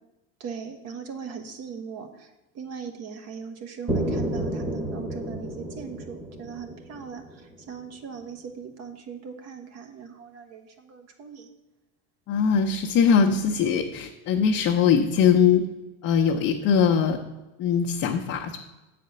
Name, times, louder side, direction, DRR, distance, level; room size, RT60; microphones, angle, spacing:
voice 1, 0.4-11.5, right 6 dB, 50° right, 6 dB, 1.3 m, -39 dB
sound 1, 3.9-7.8, right 1 dB, 15° right, 1.3 m, -31 dB
voice 2, 12.3-15.6 16.0-17.2 17.6-18.6, left 7 dB, 50° left, 1 dB, 0.8 m, -21 dB
7.7 x 4.2 x 6.7 m, 1.0 s
supercardioid pair, 115°, 33 cm